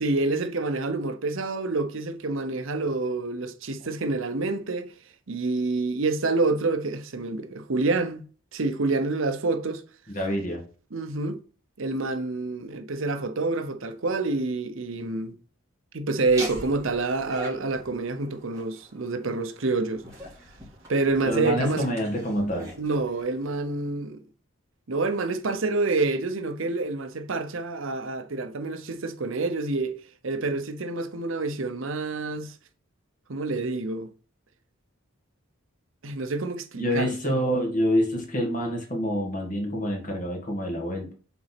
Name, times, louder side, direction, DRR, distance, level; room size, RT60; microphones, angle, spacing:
voice 1, 0.0-4.9 5.3-8.2 8.5-9.8 10.9-11.4 11.8-15.4 15.9-20.0 20.9-21.8 22.8-24.2 24.9-32.6 33.3-34.1 36.0-37.4, right 3 dB, 65° right, 0.8 m, -27 dB
voice 2, 10.1-10.6 21.3-22.7 36.8-41.1, equal, 40° left, 2.0 m, -27 dB
Laughter, 16.2-23.9, equal, 15° right, 2.7 m, -43 dB
5.9 x 4.1 x 5.8 m
head